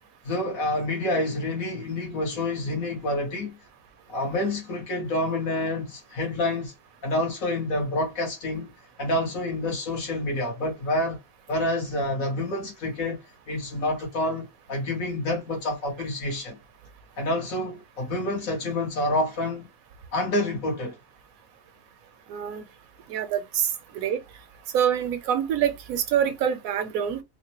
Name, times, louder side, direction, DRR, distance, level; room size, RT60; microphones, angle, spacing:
voice 1, 0.2-3.6 4.1-6.7 7.0-8.7 9.0-11.2 11.5-13.2 13.5-16.6 17.2-19.7 20.1-21.0, left 1 dB, 75° left, 1.8 m, -28 dB
voice 2, 22.3-22.6 23.1-24.2 24.7-27.2, right 9 dB, 85° right, 1.1 m, -26 dB
3.8 x 2.1 x 2.9 m
omnidirectional pair, 1.4 m